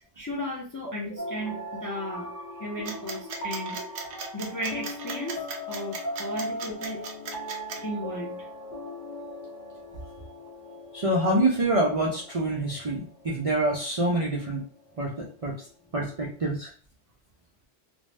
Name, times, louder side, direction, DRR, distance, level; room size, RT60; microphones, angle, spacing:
voice 1, 0.2-2.3 2.6-3.8 4.3-7.0 7.8-8.5, equal, 35° left, -2 dB, 0.3 m, -35 dB
sound 1, 1.2-15.4, left 1 dB, 50° left, 0.7 m, -39 dB
sound 2, 2.9-7.8, right 5 dB, 80° right, 0.9 m, -37 dB
voice 2, 10.9-14.6 15.0-15.6 15.9-16.7, right 1 dB, 55° right, -3 dB, 0.4 m, -26 dB
2.5 x 2.0 x 3.2 m, 0.41 s
omnidirectional pair, 1.2 m